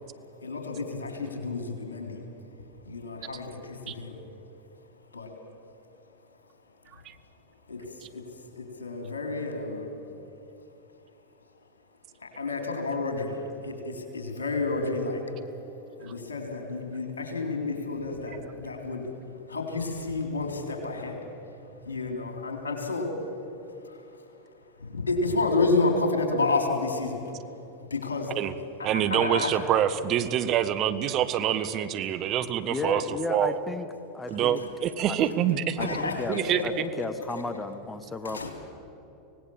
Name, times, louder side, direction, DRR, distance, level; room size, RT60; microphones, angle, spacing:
voice 1, 0.4-2.2 2.8-4.2 5.1-5.3 7.7-7.8 8.1-8.2 8.5-9.9 12.2-15.2 16.0-19.1 19.5-21.2 21.9-23.2 23.9-24.0 24.8-27.2 27.9-29.6 34.3-34.4 35.8-36.4 38.2-38.5, left 3 dB, 85° left, 3 dB, 3.7 m, -30 dB
voice 2, 28.8-33.0 33.3-33.6 34.3-36.0 36.3-36.6, right 10 dB, 40° right, 11 dB, 1.2 m, -26 dB
voice 3, 32.7-33.9 34.1-34.6 35.1-35.2 35.7-38.5, left 3 dB, 15° left, 10 dB, 1.5 m, -34 dB
25.0 x 18.0 x 7.3 m, 3.0 s
hypercardioid pair, 90°, 0 cm